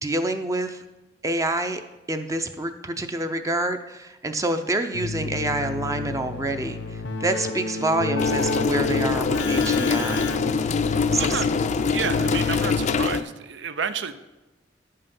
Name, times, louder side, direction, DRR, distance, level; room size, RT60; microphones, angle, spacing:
voice 1, 0.0-0.8 1.2-1.8 2.1-10.3 11.1-11.4, right 2 dB, 20° right, 7 dB, 0.5 m, -27 dB
Keyboard (musical), 4.9-13.3, left 3 dB, 85° left, 0.7 m, -31 dB
sound 1, 8.2-13.2, left 5 dB, 40° left, 0.4 m, -24 dB
voice 2, 11.2-11.5 11.9-14.2, right 6 dB, 80° right, 12 dB, 0.6 m, -30 dB
10.0 x 5.6 x 5.3 m, 1.1 s
head